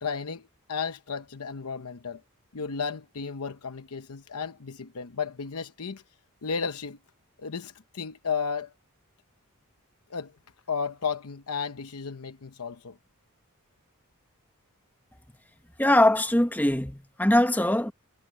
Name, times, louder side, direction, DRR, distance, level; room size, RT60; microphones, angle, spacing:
voice 1, 0.0-2.2 2.5-6.0 6.4-7.0 7.4-8.7 10.1-10.3 10.7-13.0, left 5 dB, 90° left, 0.9 m, -33 dB
voice 2, 15.8-17.9, left 1 dB, 10° left, 1.4 m, -22 dB
head